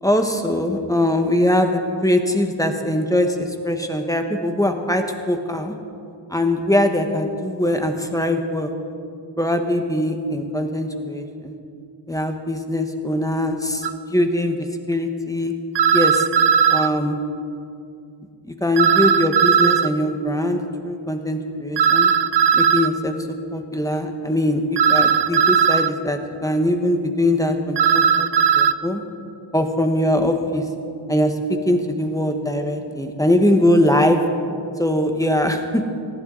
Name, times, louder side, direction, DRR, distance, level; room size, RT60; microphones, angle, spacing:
voice 1, 0.0-5.7 6.3-8.7 9.4-11.6 12.1-15.5 15.9-16.3 16.7-17.2 18.4-22.1 22.5-29.0 29.5-30.6 31.1-34.2 34.8-35.8, left 1 dB, 5° left, 5 dB, 1.6 m, -21 dB
sound 1, 13.8-13.9 15.8-16.9 18.8-19.9 21.8-22.9 24.8-25.9 27.8-28.7, right 7 dB, 60° right, 0.6 m, -17 dB
19.0 x 14.0 x 4.1 m, 2.5 s
cardioid pair, 50°, 46 cm